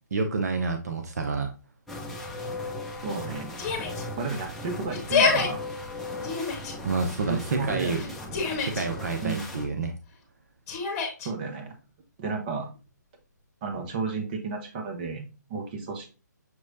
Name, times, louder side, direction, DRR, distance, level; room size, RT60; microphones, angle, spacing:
voice 1, 0.1-1.5 6.8-8.0 8.6-10.0, right 4 dB, 60° right, 5 dB, 0.7 m, -28 dB
sound 1, 1.9-9.6, left 2 dB, ahead, 0.8 m, -37 dB
voice 2, 3.0-3.6 4.2-5.6 7.3-8.1 9.2-9.5 11.2-11.8 12.2-12.7 13.6-16.1, right 4 dB, 30° right, 4 dB, 1.0 m, -32 dB
Yell, 3.6-4.0 4.9-5.5 6.2-6.7 7.9-8.8 10.7-11.3, left 5 dB, 25° left, 1.4 m, -26 dB
6.2 x 3.1 x 2.6 m, 0.31 s
figure-of-eight pair, 145°, 10 cm